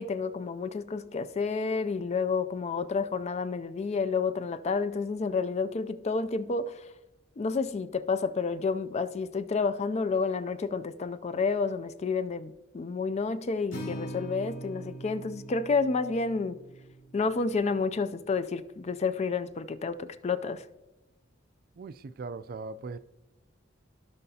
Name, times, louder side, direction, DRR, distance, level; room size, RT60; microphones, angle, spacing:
voice 1, 0.0-6.8 7.4-16.6 17.1-20.6, left 4 dB, 35° left, 0.4 m, -30 dB
Acoustic guitar, 13.7-17.9, right 1 dB, 75° left, 2.6 m, -42 dB
voice 2, 21.8-23.0, right 4 dB, 50° right, 0.3 m, -39 dB
16.0 x 5.5 x 2.8 m
head